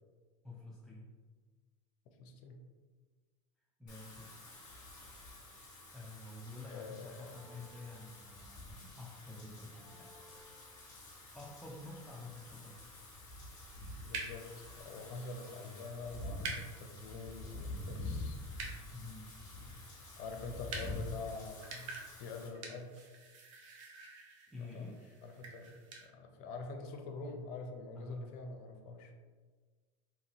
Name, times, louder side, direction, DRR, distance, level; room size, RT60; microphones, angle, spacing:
voice 1, 0.4-1.2 3.8-4.7 5.6-10.2 11.3-12.8 18.9-19.3 24.5-25.0 27.9-28.3, left 3 dB, ahead, -5 dB, 0.5 m, -49 dB
voice 2, 2.2-2.6 6.7-7.3 14.1-18.9 20.2-23.0 24.6-24.9 25.2-25.7 26.0-29.1, left 3 dB, 60° left, 4 dB, 0.5 m, -46 dB
Wind / Rain, 3.9-22.5, left 2 dB, 25° left, 1.2 m, -48 dB
sound 1, 7.2-8.7 9.8-11.3, left 1 dB, 40° right, 0.7 m, -63 dB
sound 2, 13.5-26.1, right 3 dB, 80° right, 0.7 m, -49 dB
2.9 x 2.6 x 2.9 m, 1.4 s
supercardioid pair, 110°, 16 cm